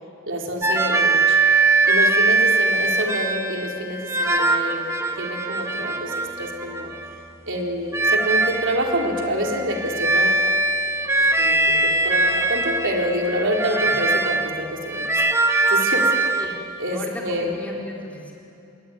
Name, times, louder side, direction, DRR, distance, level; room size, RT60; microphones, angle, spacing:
voice 1, 0.3-1.4 1.9-4.9 5.2-6.9 7.5-10.4 11.4-16.4 16.8-17.5, equal, 65° right, 0 dB, 4.0 m, -27 dB
sound 1, 0.6-7.2 7.9-16.8, right 3 dB, 15° right, 1.5 m, -21 dB
voice 2, 16.9-18.3, equal, 5° left, -2 dB, 4.4 m, -36 dB
27.5 x 22.0 x 9.5 m, 2.7 s
head